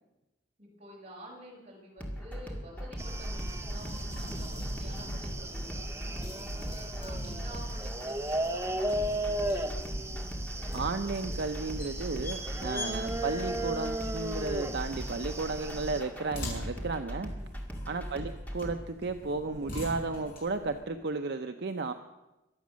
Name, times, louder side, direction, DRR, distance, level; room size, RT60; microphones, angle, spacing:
voice 1, 0.6-10.3 17.2-17.5 17.8-18.1, equal, 35° right, -3 dB, 5.7 m, -50 dB
sound 1, 2.0-18.7, equal, 10° left, 2.0 m, -40 dB
sound 2, 3.0-16.0, right 1 dB, 15° right, 0.9 m, -36 dB
sound 3, 3.4-20.8, left 1 dB, 50° left, 5.7 m, -44 dB
voice 2, 10.7-17.3 17.9-21.9, right 3 dB, 60° right, 7 dB, 0.7 m, -34 dB
23.0 x 8.4 x 6.3 m, 1.0 s
head